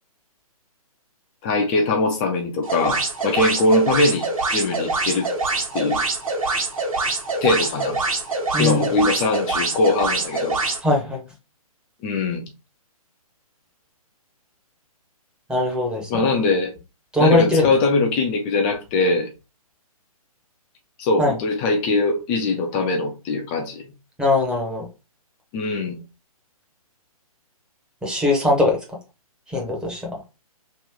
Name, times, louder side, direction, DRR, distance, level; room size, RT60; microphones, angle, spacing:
voice 1, 1.4-5.3 5.7-6.0 7.4-8.0 8.6-10.6 12.0-12.4 16.1-16.7 17.2-19.3 21.0-23.9 25.5-26.0, left 3 dB, 20° left, 0.4 m, -21 dB
sound 1, 2.6-10.8, right 3 dB, 65° right, 1.3 m, -25 dB
voice 2, 8.5-8.8 10.8-11.2 15.5-16.2 17.1-17.7 21.2-21.4 24.2-24.8 28.0-28.8 29.5-30.0, left 2 dB, 5° right, 0.8 m, -20 dB
3.0 x 2.6 x 3.6 m
figure-of-eight pair, 135°, 19 cm